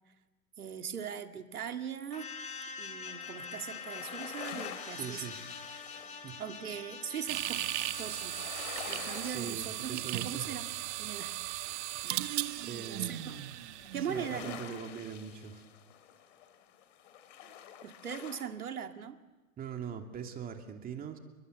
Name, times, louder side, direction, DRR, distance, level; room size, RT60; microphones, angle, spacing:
voice 1, 0.6-2.3 2.8-5.3 6.4-7.6 8.0-8.5 8.8-10.7 10.9-11.8 12.7-13.4 13.9-14.8 17.8-19.2, right 8 dB, 90° right, 6 dB, 2.2 m, -40 dB
sound 1, 2.1-9.0, left 5 dB, 15° left, 2.7 m, -45 dB
sound 2, 3.1-18.5, left 9 dB, 55° left, 3.4 m, -49 dB
voice 2, 4.9-5.4 6.2-6.4 9.2-10.5 12.6-13.1 13.9-15.6 19.6-21.2, right 7 dB, 20° right, 4 dB, 2.7 m, -42 dB
sound 3, 7.3-14.5, right 15 dB, 50° right, 1.6 m, -37 dB
29.5 x 23.0 x 8.2 m, 1.1 s
hypercardioid pair, 130°, 43 cm